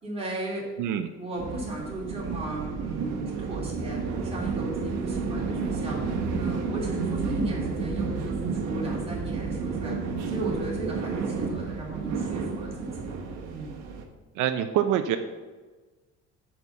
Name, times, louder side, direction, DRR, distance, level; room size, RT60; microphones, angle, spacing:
voice 1, 0.0-0.6 1.1-12.9 13.5-13.7, right 2 dB, 20° right, -4 dB, 2.7 m, -36 dB
sound 1, 1.4-14.0, right 4 dB, 60° right, 1.2 m, -31 dB
voice 2, 14.4-15.2, right 10 dB, 80° right, 8 dB, 0.6 m, -25 dB
9.2 x 4.3 x 6.8 m, 1.3 s
cardioid pair, 170°, 30 cm